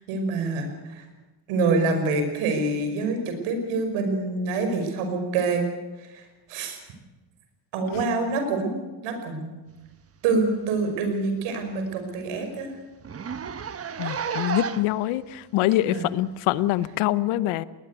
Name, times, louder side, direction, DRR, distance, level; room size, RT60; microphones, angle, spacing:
voice 1, 0.1-1.0 1.5-5.6 6.0-6.8 7.7-8.7 9.0-9.5 10.2-12.7 15.8-16.2, right 3 dB, 85° right, 6 dB, 5.4 m, -26 dB
Zipper (clothing), 10.5-10.6 10.9-11.0 11.4-11.5 11.9-12.0 12.2-12.4 13.0-15.0 15.7-15.8 16.8-16.9, right 6 dB, 30° right, 1.2 m, -32 dB
voice 2, 14.0-17.6, left 15 dB, 80° left, 17 dB, 1.0 m, -25 dB
20.0 x 20.0 x 8.2 m, 1.2 s
cardioid pair, 100°, 48 cm